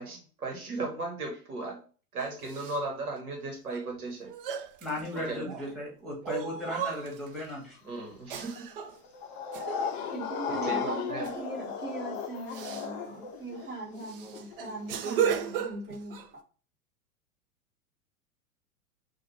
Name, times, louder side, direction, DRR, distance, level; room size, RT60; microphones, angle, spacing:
voice 1, 0.0-1.8 2.1-4.3 5.2-5.5 7.9-8.7 10.5-11.3, right 3 dB, 70° right, 1 dB, 1.3 m, -36 dB
sound 1, 2.2-2.8 3.7-3.8 4.3-5.7 6.2-7.4 8.3-9.0 9.5-9.9 11.2-11.5 11.8-12.0 12.5-12.9 13.5-13.6 14.0-16.3, right 8 dB, 40° right, 0.4 m, -35 dB
voice 2, 4.8-7.8, left 1 dB, ahead, -4 dB, 2.0 m, -36 dB
sound 2, 8.4-15.3, left 7 dB, 30° left, 0.6 m, -36 dB
voice 3, 10.1-16.2, right 2 dB, 25° right, -4 dB, 2.2 m, -40 dB
5.8 x 2.5 x 3.2 m, 0.38 s
figure-of-eight pair, 95°, 46 cm